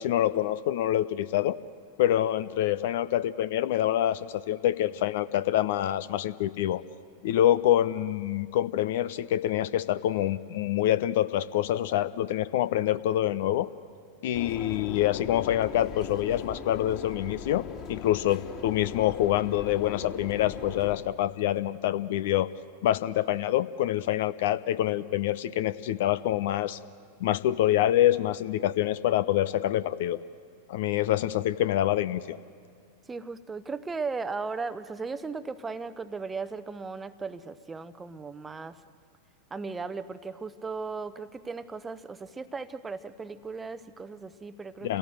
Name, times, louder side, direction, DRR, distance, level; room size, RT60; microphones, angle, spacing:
voice 1, 0.0-1.6 2.0-6.8 7.2-13.7 14.2-22.5 22.8-26.8 27.2-30.2 30.7-32.4 44.8-45.0, left 12 dB, 55° left, 15 dB, 0.6 m, -26 dB
sound 1, 14.3-21.0, left 6 dB, 35° left, 3.4 m, -40 dB
voice 2, 33.1-38.8 39.5-45.0, right 4 dB, 15° right, 13 dB, 0.8 m, -37 dB
28.0 x 17.5 x 7.8 m, 2.2 s
figure-of-eight pair, 90°, 0 cm